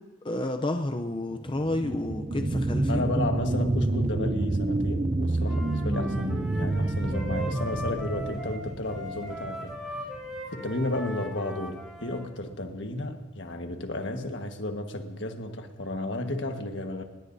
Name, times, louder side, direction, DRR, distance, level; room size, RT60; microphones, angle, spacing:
voice 1, 0.2-3.0, left 2 dB, 25° left, 5 dB, 0.6 m, -30 dB
sound 1, 1.3-10.4 10.8-10.9, right 2 dB, 25° right, 0.5 m, -28 dB
voice 2, 2.9-10.0 10.5-17.0, left 2 dB, 65° left, 4 dB, 1.5 m, -33 dB
Wind instrument woodwind instrument, 5.4-12.3, equal, 5° right, 4.0 m, -39 dB
25.5 x 20.0 x 2.7 m, 1.2 s
head